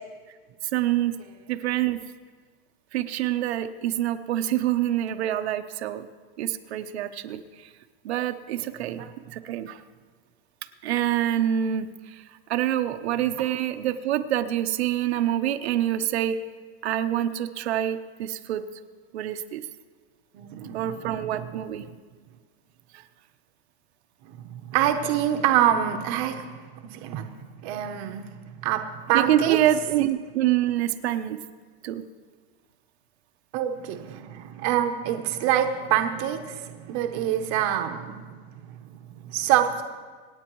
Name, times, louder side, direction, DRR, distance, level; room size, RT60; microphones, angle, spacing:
voice 1, 0.7-1.2 1.5-2.0 2.9-6.1 6.4-7.7 8.0-9.0 9.3-9.8 10.8-12.2 12.5-16.4 16.8-18.7 19.1-19.6 20.7-21.8 22.9-23.0 29.1-31.4 31.8-32.0, right 12 dB, 85° right, 8 dB, 0.9 m, -26 dB
voice 2, 20.3-21.5 21.9-22.0 24.2-27.3 27.6-28.3 28.6-29.6 33.5-39.8, right 11 dB, 35° right, 6 dB, 0.8 m, -26 dB
26.5 x 9.0 x 3.1 m, 1.5 s
supercardioid pair, 175°, 31 cm